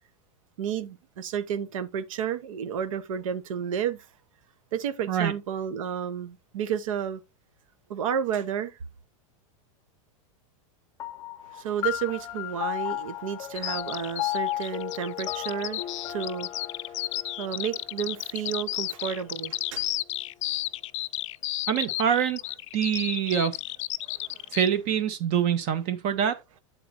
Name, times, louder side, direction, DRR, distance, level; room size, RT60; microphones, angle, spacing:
voice 1, 0.6-4.1 4.7-7.2 7.9-8.8 11.4-17.0 17.4-19.9 24.0-24.6, right 8 dB, 80° right, 1.1 m, -32 dB
sound 1, 11.0-19.8, left 15 dB, 20° left, 0.6 m, -35 dB
Bird vocalization bird call bird song, 13.5-24.7, left 16 dB, 65° left, 0.5 m, -33 dB
voice 2, 21.7-22.4 22.7-23.6 24.5-26.4, right 8 dB, 35° right, 0.7 m, -25 dB
8.4 x 4.1 x 4.1 m
supercardioid pair, 170°, 17 cm